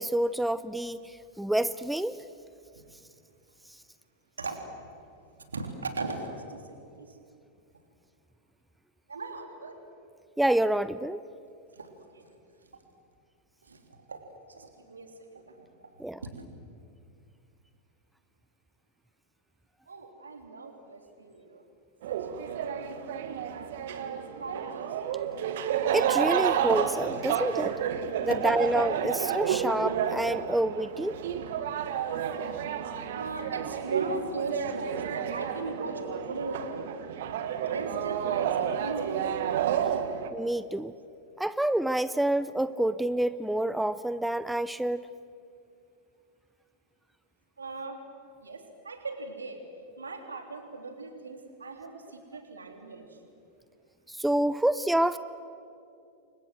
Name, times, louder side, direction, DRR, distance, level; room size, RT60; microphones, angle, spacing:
voice 1, 0.0-2.2 10.4-11.2 16.0-16.2 25.9-27.8 28.2-31.1 32.3-32.6 40.3-40.9 41.4-45.0 54.1-55.2, right 1 dB, 5° right, 15 dB, 0.6 m, -28 dB
voice 2, 5.5-7.2 9.1-9.8 11.7-12.3 13.6-15.9 16.3-16.5 19.9-21.7 22.1-25.0 27.1-27.2 28.2-28.4 29.0-29.1 31.5-36.9 37.7-39.2 47.6-48.1 48.4-49.6 50.0-53.2, right 3 dB, 75° right, 5 dB, 3.2 m, -39 dB
sound 1, 22.0-40.3, right 9 dB, 55° right, 1.6 m, -31 dB
29.0 x 24.0 x 7.8 m, 2.5 s
figure-of-eight pair, 90°, 0 cm